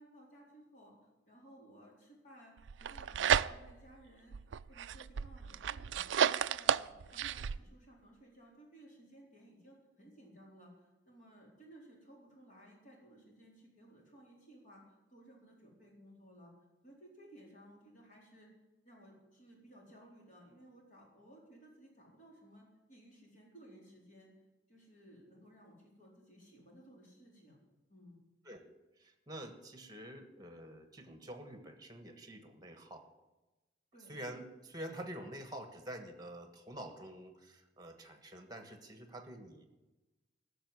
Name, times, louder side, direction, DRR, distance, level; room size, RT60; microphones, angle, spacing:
voice 1, 0.0-4.3 4.7-14.8 15.1-16.5 16.8-18.5 18.8-24.3 24.7-27.6 27.9-28.2 33.9-34.1, right 1 dB, 40° left, -2 dB, 4.1 m, -58 dB
sound 1, 2.7-3.9 4.3-7.6, right 8 dB, 80° right, 0.4 m, -32 dB
voice 2, 29.0-33.1 34.1-39.6, right 1 dB, 20° right, 7 dB, 1.4 m, -47 dB
14.0 x 6.8 x 9.6 m, 1.1 s
head